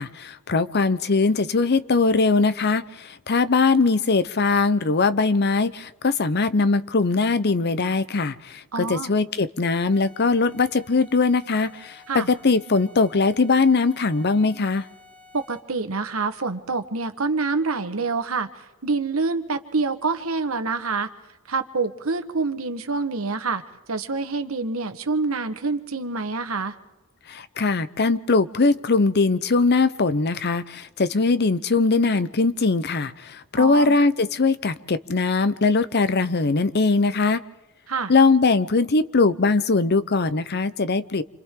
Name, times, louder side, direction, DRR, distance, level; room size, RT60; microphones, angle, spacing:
voice 1, 0.0-14.8 27.3-37.4 38.1-41.2, left 3 dB, 50° left, 14 dB, 0.8 m, -21 dB
voice 2, 8.7-9.1 12.1-12.3 15.3-18.5 18.8-21.1 21.5-23.6 23.9-26.8 33.5-34.0 37.9-38.1, right 4 dB, 90° right, 9 dB, 1.4 m, -26 dB
sound 1, 9.9-15.8, left 3 dB, 15° left, 4.8 m, -51 dB
28.0 x 26.0 x 3.8 m, 1.1 s
head